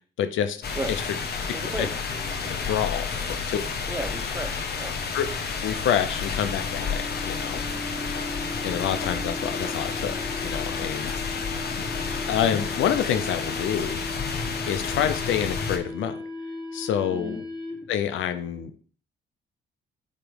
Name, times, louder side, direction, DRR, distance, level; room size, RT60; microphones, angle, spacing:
voice 1, 0.2-0.6 1.8-1.9 2.6-3.6 5.1-5.3 5.6-7.6 8.6-11.1 12.3-14.0 14.7-16.2 16.7-17.4 17.9-18.8, left 9 dB, 80° left, 9 dB, 0.7 m, -27 dB
sound 1, 0.6-15.8, left 5 dB, 55° left, 1.1 m, -31 dB
voice 2, 1.5-1.9 3.2-3.3 3.9-5.0 7.7-8.1 17.1-17.4, right 2 dB, 15° right, 8 dB, 0.8 m, -35 dB
sound 2, 2.1-18.0, left 2 dB, 20° left, 1.7 m, -38 dB
8.5 x 3.1 x 5.1 m, 0.44 s
cardioid pair, 90°, 20 cm